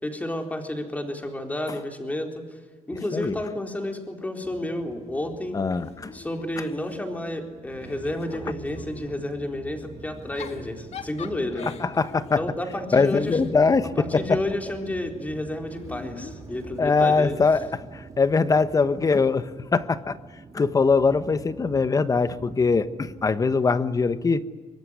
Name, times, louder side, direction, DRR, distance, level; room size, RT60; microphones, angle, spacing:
voice 1, 0.0-2.4 2.9-5.6 6.1-11.7 12.4-13.4 14.0-17.4, left 1 dB, 10° left, 4 dB, 4.0 m, -31 dB
voice 2, 2.9-3.3 5.5-6.1 11.6-12.4 12.9-14.4 16.8-17.7 17.9-20.2 20.5-24.4, left 4 dB, 25° left, 13 dB, 1.2 m, -22 dB
sound 1, 4.4-23.5, right 4 dB, 25° right, 2.3 m, -45 dB
Giggle / Chuckle chortle, 5.7-7.4 7.8-9.2 10.1-14.6 15.7-17.1, left 7 dB, 55° left, 1.7 m, -44 dB
24.0 x 22.5 x 9.9 m, 1.3 s
cardioid pair, 125°, 13 cm